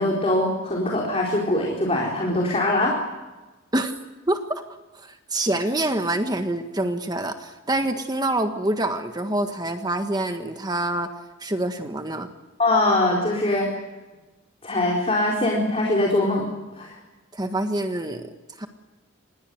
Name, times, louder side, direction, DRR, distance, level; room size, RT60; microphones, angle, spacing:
voice 1, 0.0-3.0 12.6-13.7 14.6-16.5 16.7-16.9, left 1 dB, 30° left, -1 dB, 4.4 m, -22 dB
voice 2, 4.3-4.6 4.9-11.1 11.4-12.3 17.3-18.3 18.6-18.7, right 1 dB, 20° right, 6 dB, 1.5 m, -26 dB
27.5 x 21.0 x 8.0 m, 1.2 s
head